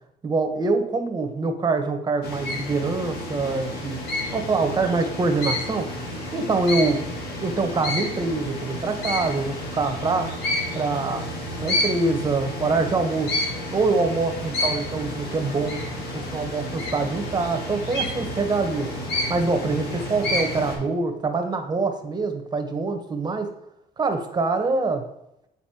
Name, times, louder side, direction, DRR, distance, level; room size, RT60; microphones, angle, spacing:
voice 1, 0.2-4.0 4.3-5.9 6.3-7.1 7.4-10.4 10.7-11.2 11.6-13.4 13.7-15.8 16.1-18.9 19.3-23.5 24.0-25.1, right 3 dB, 25° right, 5 dB, 0.9 m, -25 dB
sound 1, 2.2-20.8, left 1 dB, 80° left, 1.7 m, -30 dB
8.9 x 4.2 x 2.8 m, 0.84 s
cardioid pair, 110°, 17 cm